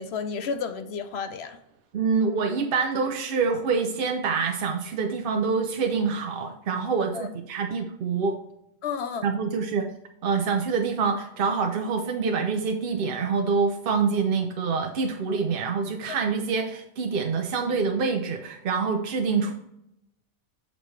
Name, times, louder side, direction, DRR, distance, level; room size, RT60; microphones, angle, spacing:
voice 1, 0.0-1.6 7.1-7.3 8.8-9.3, left 5 dB, 60° left, 9 dB, 0.8 m, -31 dB
voice 2, 1.9-8.4 9.2-9.9 10.2-19.5, right 5 dB, 55° right, 4 dB, 0.7 m, -26 dB
7.4 x 5.3 x 3.2 m, 0.79 s
omnidirectional pair, 1.5 m